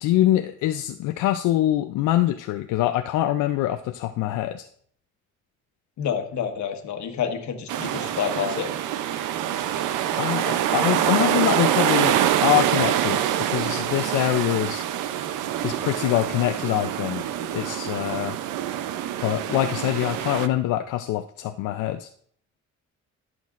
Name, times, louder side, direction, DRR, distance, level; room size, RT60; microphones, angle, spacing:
voice 1, 0.0-4.7 10.2-14.8 15.6-17.2 17.5-18.4 19.2-22.1, left 14 dB, 90° left, 8 dB, 0.5 m, -24 dB
voice 2, 6.0-8.7, left 8 dB, 70° left, 5 dB, 1.3 m, -28 dB
sound 1, 7.7-20.5, right 11 dB, 85° right, 0.6 m, -25 dB
14.5 x 6.0 x 2.5 m, 0.62 s
cardioid pair, 90°, 30 cm